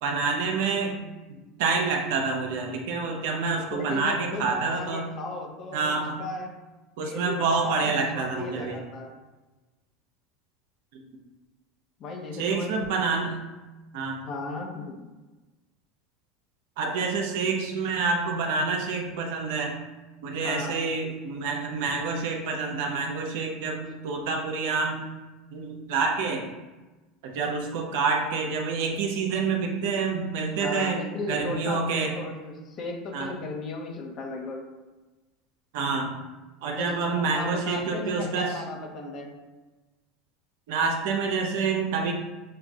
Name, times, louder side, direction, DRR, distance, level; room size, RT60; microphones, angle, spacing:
voice 1, 0.0-1.0 1.3-5.1 5.7-6.2 7.0-8.8 10.9-11.0 12.3-13.4 13.9-14.2 16.8-19.8 20.2-25.1 25.5-26.4 27.2-31.0 31.3-32.2 33.1-33.3 35.7-36.1 36.6-38.5 40.7-42.1, right 4 dB, 75° right, 2 dB, 0.7 m, -27 dB
voice 2, 3.7-6.5 7.0-9.2 12.0-13.0 14.2-15.1 20.4-20.8 30.6-34.6 36.8-39.4, left 2 dB, 45° left, 1 dB, 1.0 m, -36 dB
6.7 x 2.4 x 2.4 m, 1.2 s
supercardioid pair, 100°, 0 cm